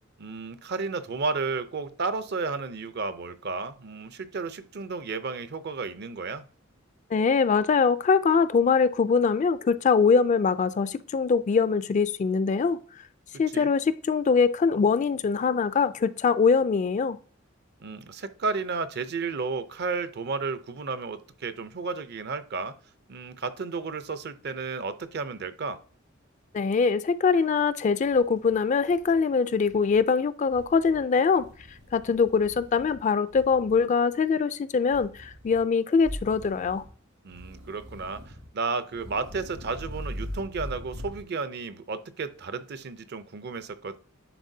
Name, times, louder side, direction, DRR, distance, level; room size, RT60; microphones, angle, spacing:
voice 1, 0.2-6.4 13.5-13.7 17.8-22.8 23.1-25.8 37.2-44.0, right 4 dB, 55° right, 0.6 m, -33 dB
voice 2, 7.1-12.8 13.4-17.2 26.5-31.5 31.9-36.8, left 5 dB, 35° left, 0.3 m, -23 dB
sound 1, 28.0-29.2 29.5-30.0 30.5-31.0 31.4-33.0 33.3-33.8 34.9-35.6 36.0-36.9 37.3-38.5 38.9-41.2, equal, 80° right, 3.1 m, -42 dB
10.0 x 4.0 x 2.7 m
head